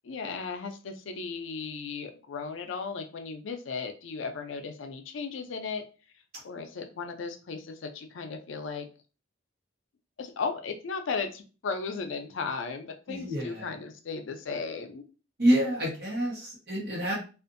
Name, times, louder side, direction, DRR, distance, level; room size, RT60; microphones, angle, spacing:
voice 1, 0.0-5.8 6.4-8.9 10.2-15.0, left 4 dB, 75° left, 6 dB, 0.4 m, -36 dB
voice 2, 13.1-13.7 15.4-17.1, equal, 55° right, -3 dB, 1.1 m, -27 dB
2.5 x 2.4 x 2.5 m, 0.35 s
head